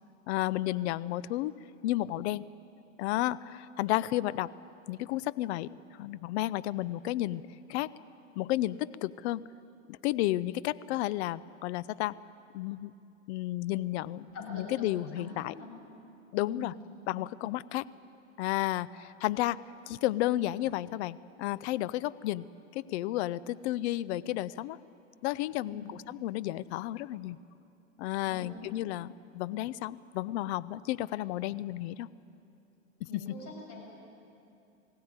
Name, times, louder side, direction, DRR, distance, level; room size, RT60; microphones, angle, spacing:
voice 1, 0.3-1.5 1.8-2.4 3.0-4.5 4.9-5.7 6.0-7.4 7.7-7.9 8.4-9.4 9.9-12.1 12.5-12.9 13.3-15.5 16.3-16.7 17.1-17.8 18.4-22.4 22.7-24.8 25.2-27.4 28.0-32.1 33.1-33.2, left 15 dB, 55° left, 18 dB, 0.7 m, -32 dB
voice 2, 14.3-14.9 15.2-15.7 16.4-16.7 25.6-25.9 28.2-28.6 33.1-33.8, left 3 dB, 35° left, -2 dB, 7.9 m, -43 dB
21.0 x 16.5 x 9.7 m, 2.7 s
hypercardioid pair, 105°, 39 cm